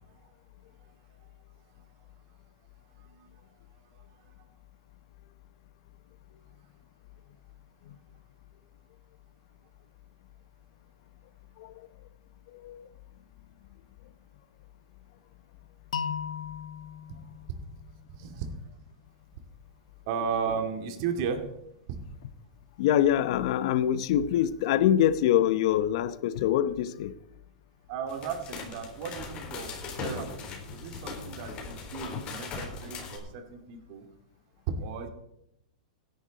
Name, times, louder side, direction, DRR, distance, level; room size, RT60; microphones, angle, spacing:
voice 1, 3.0-3.3 3.9-4.0 18.1-18.8 20.1-21.4 21.9-22.0 27.9-29.7 30.0-34.1 34.8-35.1, right 6 dB, 50° right, 2.4 m, -35 dB
voice 2, 11.6-11.9 12.5-12.9 22.8-27.2, left 11 dB, 60° left, 0.9 m, -25 dB
sound 1, 15.9-18.8, left 7 dB, 85° left, 1.4 m, -38 dB
sound 2, 28.1-33.2, left 4 dB, 30° left, 3.6 m, -39 dB
16.5 x 10.5 x 4.1 m
hypercardioid pair, 130°, 4 cm